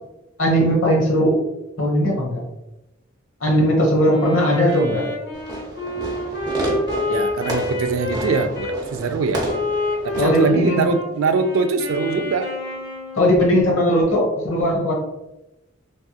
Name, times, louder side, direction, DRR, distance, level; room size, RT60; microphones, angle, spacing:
voice 1, 0.4-1.4 1.8-2.4 3.4-5.0 10.2-10.9 13.2-15.0, equal, 80° left, 0.9 m, -18 dB
Wind instrument woodwind instrument, 4.1-8.8 9.4-13.4, left 1 dB, 60° left, 1.0 m, -28 dB
Fireworks, 5.3-10.5, right 1 dB, 20° right, 0.6 m, -30 dB
voice 2, 7.1-9.5 10.0-12.5, right 4 dB, 75° right, 0.3 m, -23 dB
3.3 x 2.7 x 2.3 m
head